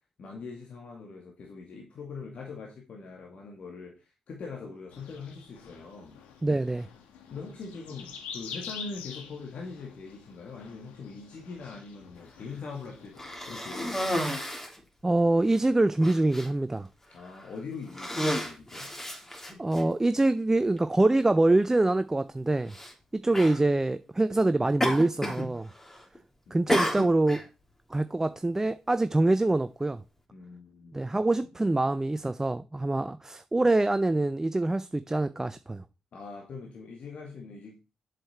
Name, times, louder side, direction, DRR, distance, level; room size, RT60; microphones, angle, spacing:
voice 1, 0.2-6.2 7.3-14.3 17.1-18.9 26.5-26.7 30.3-31.0 36.1-37.8, left 4 dB, 60° left, 2.1 m, -42 dB
sound 1, 4.9-14.2, left 6 dB, 80° left, 1.3 m, -46 dB
voice 2, 6.4-6.9 15.0-16.9 19.6-22.7 23.1-25.7 26.5-27.4 27.9-30.0 30.9-35.8, right 2 dB, 20° right, 0.6 m, -25 dB
Cough, 13.2-14.8 15.5-15.6 16.0-16.5 17.2-17.5 17.9-19.8 20.8-20.9 22.7-22.9 23.3-23.6 24.8-25.5 25.8-26.2 26.7-27.4, equal, 15° left, 3.1 m, -31 dB
7.7 x 6.6 x 4.4 m
hypercardioid pair, 40°, 2 cm